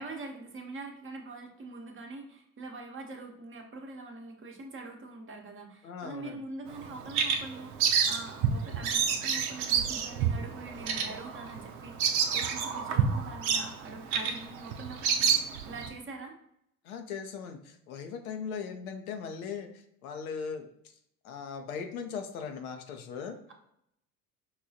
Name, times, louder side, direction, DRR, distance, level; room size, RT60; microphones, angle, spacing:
voice 1, 0.0-16.4, right 3 dB, 30° right, 2 dB, 0.8 m, -44 dB
voice 2, 5.8-6.4 16.8-20.9 21.2-23.4, left 6 dB, 75° left, 5 dB, 0.7 m, -39 dB
Bird vocalization bird call bird song, 6.7-15.9, right 7 dB, 70° right, 0.6 m, -29 dB
5.4 x 2.3 x 2.7 m, 0.75 s
hypercardioid pair, 70°, 43 cm